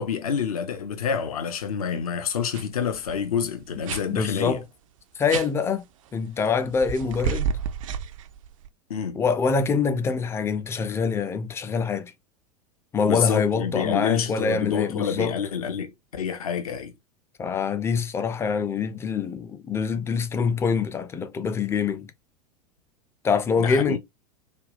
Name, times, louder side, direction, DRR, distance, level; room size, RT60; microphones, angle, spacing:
voice 1, 0.0-4.6 8.9-9.2 13.0-16.9 23.6-24.0, left 7 dB, 65° left, 0.6 m, -28 dB
sound 1, 2.5-2.6 2.9-3.2 3.9-4.0 5.3-5.5 6.7-8.7, right 7 dB, 55° right, 0.4 m, -30 dB
voice 2, 4.1-4.6 5.2-5.8 6.1-7.6 9.1-12.1 12.9-15.3 17.4-22.1 23.2-24.0, left 5 dB, 15° left, 0.4 m, -25 dB
3.4 x 2.2 x 2.4 m
figure-of-eight pair, 85°, 20 cm